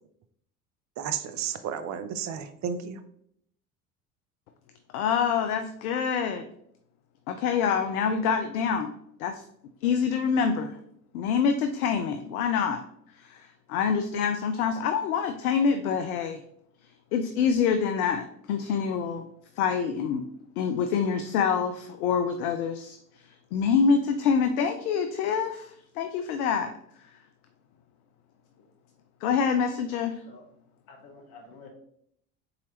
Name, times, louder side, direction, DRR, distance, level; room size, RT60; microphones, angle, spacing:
voice 1, 1.0-3.0, right 8 dB, 40° right, 10 dB, 0.6 m, -32 dB
voice 2, 4.9-6.4 7.3-8.9 9.2-9.4 9.8-10.8 11.1-12.8 13.2-16.4 17.1-19.3 19.6-20.2 20.6-23.0 23.5-26.7 29.2-30.2, left 6 dB, 75° left, 7 dB, 0.5 m, -26 dB
voice 3, 30.9-31.7, left 3 dB, 55° left, 2 dB, 1.2 m, -50 dB
4.1 x 3.8 x 3.0 m, 0.71 s
hypercardioid pair, 65°, 44 cm